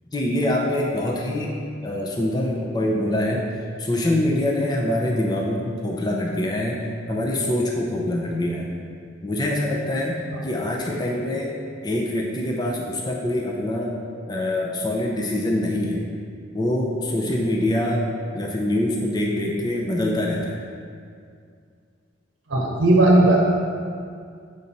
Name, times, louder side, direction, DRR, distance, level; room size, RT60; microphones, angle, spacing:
voice 1, 0.1-8.7 9.2-11.5 11.8-13.9 14.3-16.0 16.5-18.0 18.3-20.6, left 1 dB, 20° left, -2 dB, 0.6 m, -24 dB
voice 2, 22.5-23.4, right 1 dB, 90° right, -1 dB, 0.8 m, -16 dB
7.2 x 5.1 x 4.1 m, 2.2 s
head